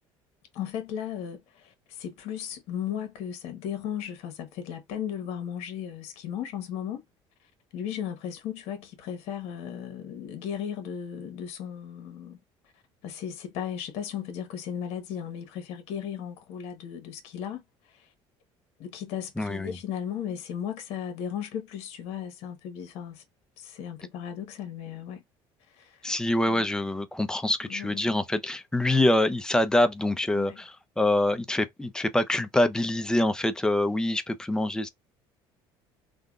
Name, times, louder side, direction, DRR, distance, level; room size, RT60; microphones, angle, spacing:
voice 1, 0.5-7.0 7.7-12.4 13.0-18.1 18.8-23.2 23.6-25.2 25.7-26.0 26.5-26.7 27.7-28.2 30.3-30.6, left 9 dB, 75° left, 1.0 m, -36 dB
voice 2, 19.4-19.8 26.0-34.9, left 1 dB, 5° left, 0.5 m, -25 dB
3.7 x 2.2 x 2.4 m
cardioid pair, 115°, 11 cm